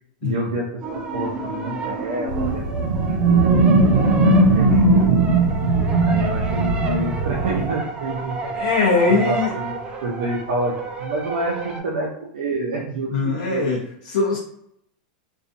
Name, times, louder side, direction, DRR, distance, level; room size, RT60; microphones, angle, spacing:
voice 1, 0.2-5.6 6.0-13.7, right 2 dB, 85° right, -3 dB, 0.6 m, -28 dB
sound 1, 0.8-11.8, right 3 dB, 20° right, 0.4 m, -30 dB
sound 2, 2.3-7.7, right 2 dB, 60° right, 0.9 m, -18 dB
voice 2, 8.5-9.5 13.1-14.4, left 4 dB, 70° left, -2 dB, 0.5 m, -21 dB
2.5 x 2.3 x 2.5 m, 0.71 s
supercardioid pair, 150°, 5 cm